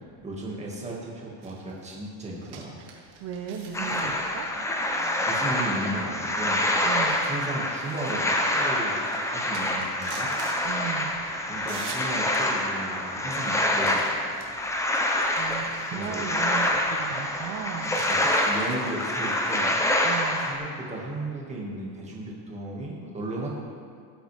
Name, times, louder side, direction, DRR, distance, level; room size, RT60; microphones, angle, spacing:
voice 1, 0.2-2.9 4.9-6.7 7.3-10.3 11.5-14.2 15.9-16.2 18.1-19.8 20.5-23.5, right 1 dB, 15° right, -3 dB, 1.9 m, -35 dB
sound 1, 1.4-16.1 16.3-16.4 17.8-19.9, right 5 dB, 55° right, 1.9 m, -46 dB
voice 2, 3.2-4.5 6.8-7.2 10.6-11.3 15.4-18.0 20.0-20.5, right 8 dB, 35° right, 3 dB, 0.6 m, -36 dB
sound 2, 3.7-20.5, left 1 dB, 5° left, 0.6 m, -26 dB
17.5 x 7.7 x 3.5 m, 2.3 s
cardioid pair, 150°, 48 cm